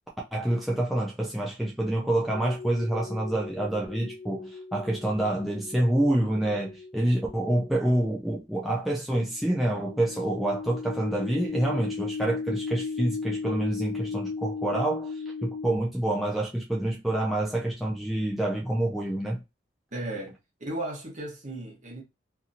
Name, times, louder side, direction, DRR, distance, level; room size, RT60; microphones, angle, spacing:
voice 1, 0.3-19.4, right 1 dB, ahead, 0.4 m, -27 dB
sound 1, 2.3-7.8 9.3-15.8, left 4 dB, 90° left, 0.6 m, -37 dB
voice 2, 19.9-22.0, right 1 dB, 40° right, 1.0 m, -35 dB
2.8 x 2.6 x 2.4 m
head